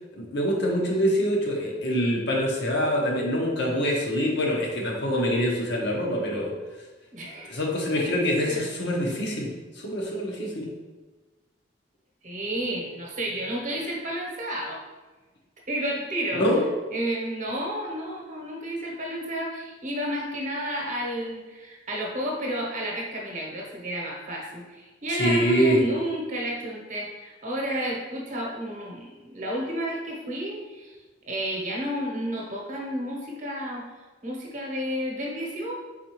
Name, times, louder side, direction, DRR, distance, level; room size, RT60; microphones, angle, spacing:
voice 1, 0.2-6.5 7.4-9.5 9.8-10.7 16.3-16.6 25.1-25.8, equal, 65° left, -2 dB, 0.9 m, -25 dB
voice 2, 7.1-7.6 7.9-8.1 8.5-8.6 12.2-14.8 15.7-16.4 16.9-30.9 31.3-33.9 34.2-35.7, equal, 40° right, -2 dB, 0.9 m, -31 dB
4.1 x 3.9 x 3.0 m, 1.3 s
head